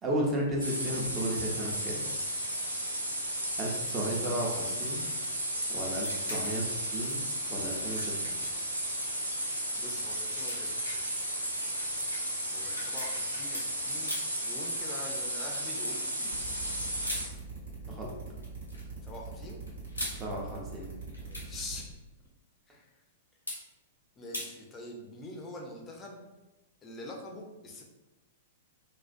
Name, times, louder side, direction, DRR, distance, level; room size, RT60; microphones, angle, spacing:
voice 1, 0.0-2.1 3.6-5.0 5.7-7.2 7.5-8.3 17.9-18.1 20.2-20.9, right 1 dB, 20° right, -2 dB, 0.6 m, -33 dB
sound 1, 0.6-17.3, right 1 dB, 90° right, 0.4 m, -34 dB
sound 2, 5.9-6.7 7.0-9.1 9.5-9.6 10.0-13.7 14.0-14.4 15.5-15.9 17.0-17.3 18.4-18.9 19.7-20.2 21.1-21.6 23.5-23.6 24.3-24.5, left 1 dB, 85° left, 0.6 m, -41 dB
voice 2, 9.8-10.9 12.5-14.1 14.4-16.4 19.0-19.6 21.2-21.9 22.7-22.9 24.2-26.2 26.8-27.8, left 2 dB, 20° left, 0 dB, 0.5 m, -44 dB
sound 3, 16.3-21.8, right 5 dB, 65° right, 0.8 m, -42 dB
2.3 x 2.2 x 2.5 m, 1.0 s
figure-of-eight pair, 100°, 0 cm